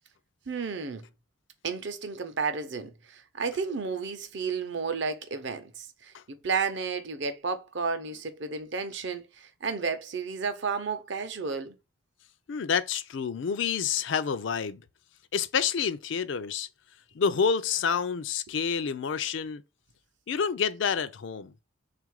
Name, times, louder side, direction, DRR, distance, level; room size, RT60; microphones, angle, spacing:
voice 1, 0.5-1.0 1.6-11.8, right 5 dB, 60° right, 0.6 m, -32 dB
voice 2, 12.5-14.8 15.3-16.7 17.1-19.6 20.3-21.5, left 6 dB, 65° left, 0.4 m, -28 dB
3.6 x 2.5 x 4.6 m
head